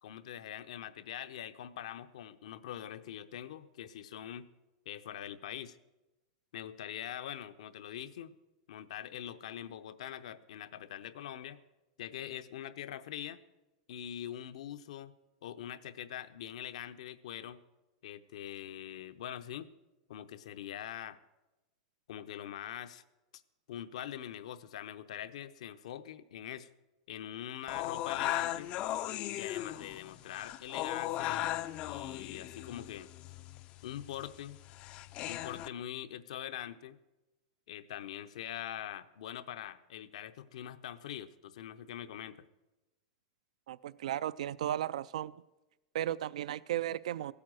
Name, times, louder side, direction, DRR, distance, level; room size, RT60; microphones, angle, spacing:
voice 1, 0.0-4.5 4.9-5.8 6.5-8.3 8.7-11.6 12.0-13.4 13.9-15.1 15.4-17.6 18.0-19.7 20.1-21.2 22.1-23.0 23.7-26.7 27.1-28.7 29.3-31.5 31.8-33.1 33.8-34.6 35.3-37.0 37.7-42.5, left 11 dB, 75° left, 11 dB, 0.7 m, -43 dB
sound 1, 27.7-35.7, left 13 dB, 30° left, 0.3 m, -37 dB
voice 2, 43.7-45.3 45.9-47.3, right 12 dB, 85° right, 19 dB, 0.3 m, -35 dB
15.5 x 8.6 x 6.3 m, 1.0 s
supercardioid pair, 160°, 4 cm